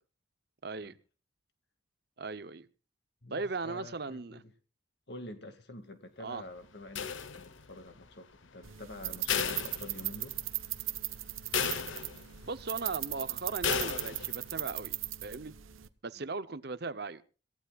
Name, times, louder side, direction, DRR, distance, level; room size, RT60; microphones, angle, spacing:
voice 1, 0.6-1.0 2.2-2.7 3.3-4.4 6.2-6.4 12.5-15.5 16.0-17.2, right 4 dB, 50° right, 14 dB, 0.8 m, -38 dB
voice 2, 3.2-4.5 5.1-10.4 16.2-16.3, left 1 dB, 55° left, 7 dB, 2.1 m, -47 dB
sound 1, 6.9-7.8 9.3-10.4 10.8-10.9 11.5-12.4 13.6-14.4, left 7 dB, 75° left, 1.1 m, -34 dB
sound 2, 8.6-15.9, right 16 dB, 85° right, 1.0 m, -38 dB
26.5 x 15.5 x 2.4 m, 0.36 s
head